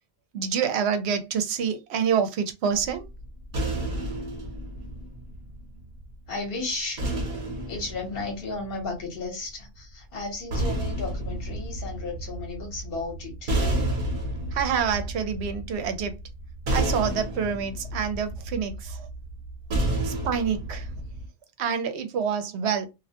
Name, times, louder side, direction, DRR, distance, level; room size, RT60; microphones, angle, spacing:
voice 1, 0.3-3.1 14.5-16.2 16.7-19.1 20.0-20.9 21.6-22.9, right 7 dB, 80° right, 0.8 m, -27 dB
sound 1, 2.7-6.0 7.0-9.2 10.2-21.3, right 1 dB, 50° right, 0.9 m, -31 dB
voice 2, 6.3-7.1 7.7-13.6, left 3 dB, 60° left, 1.2 m, -34 dB
2.5 x 2.1 x 2.8 m
omnidirectional pair, 1.1 m